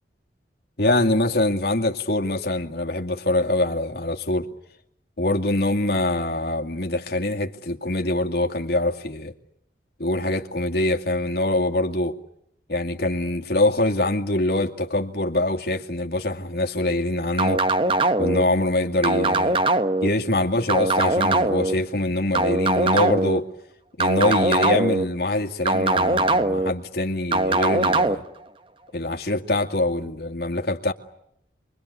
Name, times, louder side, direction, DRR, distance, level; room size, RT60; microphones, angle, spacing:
voice 1, 0.8-4.5 5.2-9.3 10.0-12.2 12.7-17.6 18.2-19.6 20.0-23.5 24.0-28.2 28.9-30.9, left 1 dB, 60° left, 2.3 m, -24 dB
sound 1, 17.4-18.4 19.0-20.1 20.7-21.7 22.3-23.4 24.0-25.1 25.7-26.7 27.3-28.2, right 2 dB, 30° right, 1.2 m, -21 dB
29.5 x 24.0 x 8.4 m
head